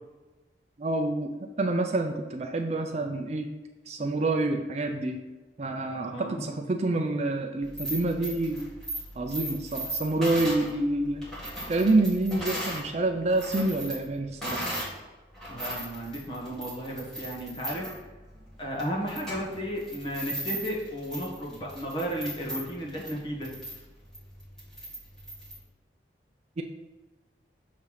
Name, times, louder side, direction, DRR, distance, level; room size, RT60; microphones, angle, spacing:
voice 1, 0.8-1.3 1.6-3.5 3.9-5.2 5.6-8.6 9.2-11.2 11.7-14.6 26.6-26.7, right 2 dB, 35° right, 4 dB, 0.4 m, -27 dB
voice 2, 5.8-6.5 15.5-17.9 18.6-23.5, equal, 25° left, -3 dB, 1.4 m, -34 dB
sound 1, 7.6-12.9 13.2-15.0 15.3-25.6, right 1 dB, 5° left, 1.6 m, -37 dB
6.7 x 3.2 x 5.6 m, 1.2 s
head